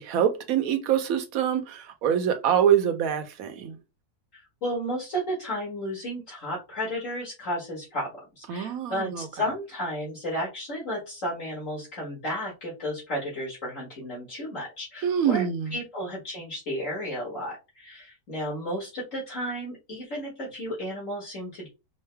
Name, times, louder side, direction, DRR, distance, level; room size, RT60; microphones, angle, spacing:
voice 1, 0.0-3.8 8.5-9.3 15.0-15.7, right 9 dB, 65° right, 1.1 m, -25 dB
voice 2, 4.3-8.1 8.4-15.5 15.7-21.7, equal, 55° left, 2.0 m, -33 dB
5.4 x 2.1 x 3.3 m
omnidirectional pair, 1.6 m